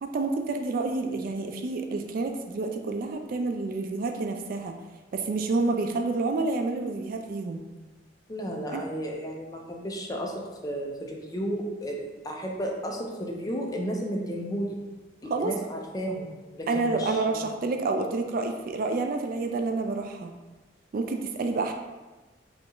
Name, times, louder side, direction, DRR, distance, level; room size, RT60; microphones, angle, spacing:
voice 1, 0.0-4.7 5.1-7.6 8.7-8.8 15.3-15.5 16.7-20.3 20.9-21.7, right 3 dB, 50° right, 5 dB, 0.3 m, -29 dB
voice 2, 8.3-14.8 15.2-17.4, equal, 20° left, 0 dB, 0.5 m, -33 dB
5.1 x 2.4 x 3.0 m, 1.2 s
head